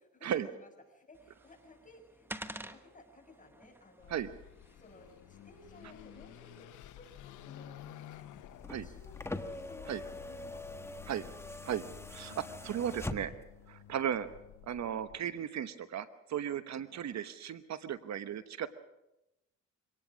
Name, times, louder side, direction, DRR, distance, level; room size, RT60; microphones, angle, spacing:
voice 1, 0.1-4.2 4.8-8.2 8.7-11.3 16.9-17.1, left 2 dB, 25° left, 3 dB, 6.7 m, -57 dB
sound 1, 1.1-6.6, right 1 dB, 5° right, 1.2 m, -50 dB
Car passing by / Accelerating revving vroom, 4.0-15.2, left 11 dB, 80° left, 1.1 m, -52 dB
sound 2, 8.5-13.6 14.8-14.9, left 2 dB, 10° left, 1.4 m, -43 dB
voice 2, 12.1-13.3 13.7-14.3 14.6-18.7, right 9 dB, 60° right, 12 dB, 1.1 m, -36 dB
24.5 x 18.5 x 6.3 m, 0.91 s
cardioid pair, 90°, 30 cm